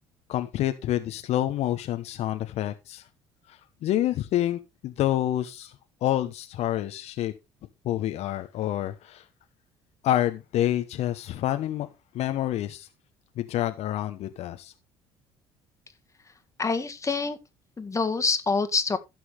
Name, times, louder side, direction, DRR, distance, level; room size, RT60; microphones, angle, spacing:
voice 1, 0.3-3.0 3.5-5.7 6.0-7.3 7.8-9.3 10.0-11.9 12.1-12.9 13.4-14.7, left 13 dB, 60° left, 1.0 m, -28 dB
voice 2, 16.6-17.4 17.8-19.0, left 4 dB, 25° left, 1.8 m, -26 dB
15.5 x 6.2 x 3.4 m
hypercardioid pair, 60°, 12 cm